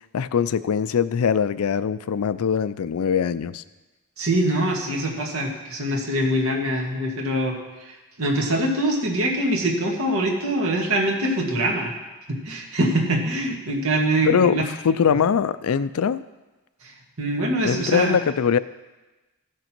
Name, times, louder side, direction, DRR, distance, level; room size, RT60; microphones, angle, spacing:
voice 1, 0.1-3.6 14.2-16.2 17.6-18.6, left 7 dB, 75° left, 15 dB, 0.4 m, -22 dB
voice 2, 4.2-7.6 7.8-11.9 12.3-14.7 17.2-18.2, right 1 dB, 70° right, 0 dB, 1.9 m, -24 dB
15.5 x 6.6 x 4.5 m, 1.1 s
head